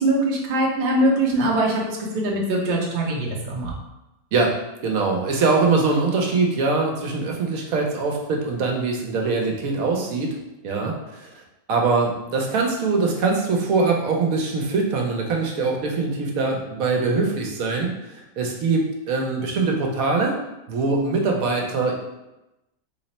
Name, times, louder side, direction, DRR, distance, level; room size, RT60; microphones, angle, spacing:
voice 1, 0.0-3.7, right 1 dB, 45° right, -2 dB, 0.6 m, -22 dB
voice 2, 4.8-10.3 10.6-11.3 11.7-20.4 20.7-21.9, right 4 dB, 80° right, 0 dB, 1.0 m, -23 dB
3.2 x 2.0 x 4.1 m, 0.95 s
omnidirectional pair, 1.5 m